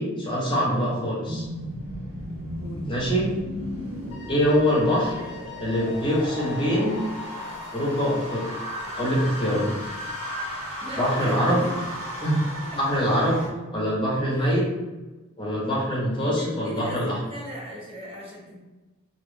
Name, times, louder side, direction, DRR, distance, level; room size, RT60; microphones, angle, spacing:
voice 1, 0.0-1.5 2.9-3.3 4.3-5.1 5.6-7.0 7.7-8.5 9.0-9.7 11.0-11.6 12.2-12.4 12.8-13.4 13.7-14.7 15.4-17.2, equal, 25° left, -5 dB, 0.9 m, -24 dB
sound 1, 1.3-13.5, equal, 85° right, 1.0 m, -35 dB
Wind instrument woodwind instrument, 4.1-10.5, left 9 dB, 65° left, 0.7 m, -43 dB
voice 2, 5.0-5.3 10.8-11.7 12.6-12.8 14.3-14.6 16.2-18.6, equal, 25° right, -4 dB, 0.6 m, -39 dB
2.9 x 2.4 x 3.3 m, 1.1 s
head